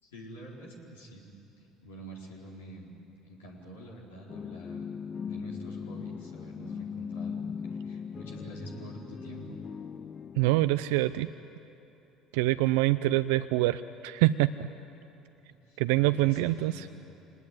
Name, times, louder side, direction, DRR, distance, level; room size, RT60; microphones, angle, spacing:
voice 1, 0.0-1.2 1.8-2.9 3.2-4.9 5.2-9.6 15.7-17.0, right 1 dB, 90° left, -2 dB, 4.4 m, -46 dB
sound 1, 4.3-10.7, left 6 dB, 35° left, 0.6 m, -39 dB
voice 2, 10.4-11.3 12.3-14.7 15.8-16.9, right 16 dB, 75° right, 12 dB, 0.5 m, -25 dB
25.5 x 20.0 x 9.5 m, 2.9 s
hypercardioid pair, 70°, 0 cm